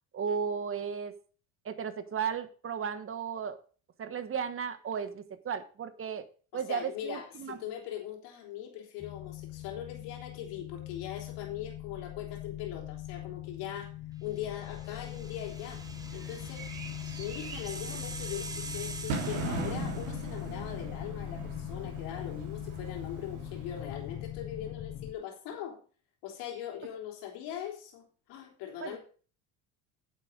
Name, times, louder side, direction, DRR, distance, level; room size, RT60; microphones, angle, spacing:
voice 1, 0.1-1.1 1.6-3.6 4.0-6.3 6.5-7.6 28.8-29.0, right 7 dB, 30° right, 11 dB, 1.3 m, -35 dB
voice 2, 6.5-13.9 14.2-15.8 16.1-16.6 17.2-25.8 26.2-29.0, left 10 dB, 75° left, 1 dB, 3.4 m, -41 dB
sound 1, 9.0-25.1, left 13 dB, 25° left, 0.4 m, -41 dB
sound 2, 14.5-20.5, right 3 dB, 10° right, 1.1 m, -45 dB
Bird / Fireworks, 15.1-24.3, right 2 dB, 70° right, 3.4 m, -40 dB
9.9 x 7.4 x 5.1 m, 0.39 s
supercardioid pair, 100°, 41 cm